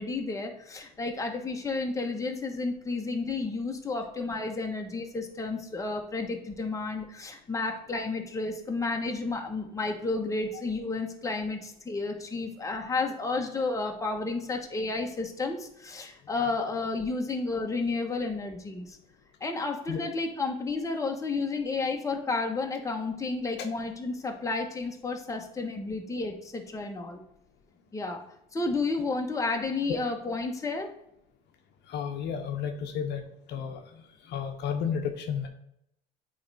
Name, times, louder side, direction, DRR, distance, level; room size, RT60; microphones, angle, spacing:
voice 1, 0.0-19.0 19.4-27.2 27.9-28.2 28.5-30.9, left 3 dB, 15° left, 3 dB, 1.1 m, -31 dB
voice 2, 31.9-33.2 33.5-35.5, left 7 dB, 60° left, 5 dB, 0.8 m, -33 dB
8.4 x 3.2 x 4.0 m, 0.77 s
supercardioid pair, 100°, 20 cm